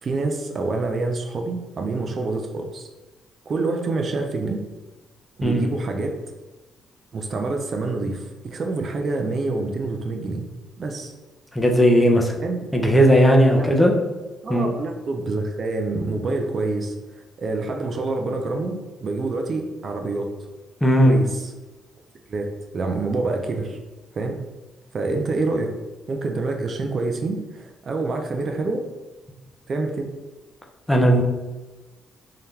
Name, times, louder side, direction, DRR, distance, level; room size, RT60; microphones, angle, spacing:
voice 1, 0.0-2.9 3.5-4.6 5.4-6.2 7.1-10.5 10.8-11.1 12.4-12.6 13.5-13.7 14.4-20.3 21.0-21.5 22.3-22.5 22.7-23.8 24.1-24.4 24.9-25.7 26.1-28.8 29.7-30.1, right 3 dB, 45° right, 4 dB, 0.5 m, -27 dB
voice 2, 11.6-12.3 12.7-13.9 14.5-14.7 20.8-21.2 30.9-31.2, equal, 10° left, 2 dB, 0.6 m, -16 dB
3.7 x 2.8 x 3.3 m, 1.2 s
cardioid pair, 90°, 0 cm